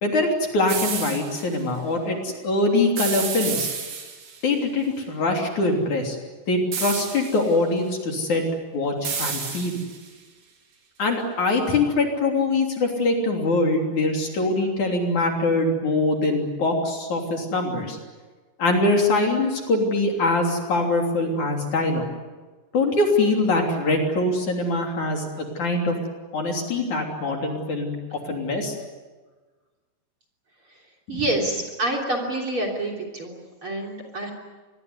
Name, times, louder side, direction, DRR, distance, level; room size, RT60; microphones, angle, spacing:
voice 1, 0.0-3.7 4.4-6.2 6.5-8.4 8.7-9.8 11.0-18.0 18.6-22.1 22.7-26.0 26.3-28.7 31.1-31.2, left 2 dB, 45° left, 2 dB, 4.3 m, -23 dB
sound 1, 0.7-1.4 3.0-4.4 6.7-7.5 9.0-10.1, right 6 dB, 60° right, 5.2 m, -30 dB
voice 2, 31.1-34.3, right 1 dB, 35° right, 4 dB, 3.7 m, -27 dB
26.0 x 21.0 x 9.6 m, 1.3 s
omnidirectional pair, 4.8 m